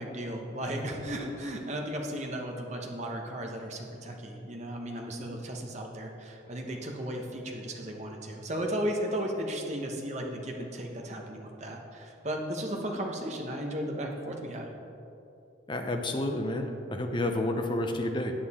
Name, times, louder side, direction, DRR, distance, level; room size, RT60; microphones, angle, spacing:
voice 1, 0.0-14.7, equal, 35° right, 1 dB, 1.0 m, -35 dB
voice 2, 15.7-18.3, left 1 dB, 25° left, 4 dB, 0.6 m, -30 dB
9.1 x 8.8 x 4.2 m, 2.8 s
head